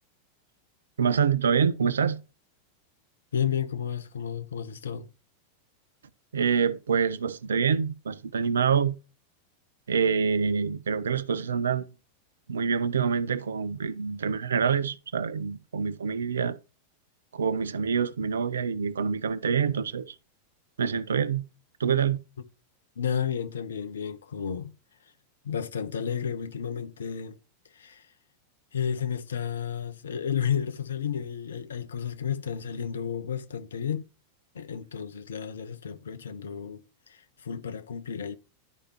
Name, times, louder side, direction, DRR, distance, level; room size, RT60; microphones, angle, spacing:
voice 1, 1.0-2.2 6.3-8.9 9.9-11.9 12.5-16.6 17.3-20.1 20.8-21.4 21.8-22.2, right 6 dB, 70° right, 0.5 m, -26 dB
voice 2, 3.3-5.1 23.0-24.7 25.4-27.4 27.7-28.1 28.7-34.0 34.5-38.4, left 8 dB, 65° left, 0.7 m, -32 dB
11.0 x 4.9 x 2.9 m
figure-of-eight pair, 90°, 0 cm